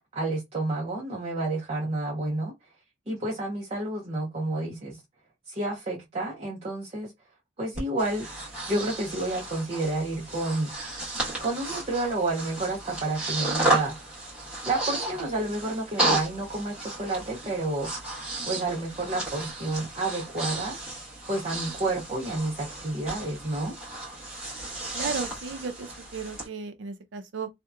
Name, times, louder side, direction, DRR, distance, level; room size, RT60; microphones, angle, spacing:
voice 1, 0.1-2.5 3.1-5.0 5.5-7.1 7.6-8.4 8.7-10.7 11.4-14.0 14.6-18.0 18.4-20.8 21.3-23.7, right 2 dB, 35° right, 0.6 m, -30 dB
Breathing, 7.8-26.5, right 2 dB, 5° right, 1.1 m, -33 dB
voice 2, 24.9-27.5, right 5 dB, 85° right, 0.5 m, -35 dB
2.7 x 2.1 x 2.3 m
head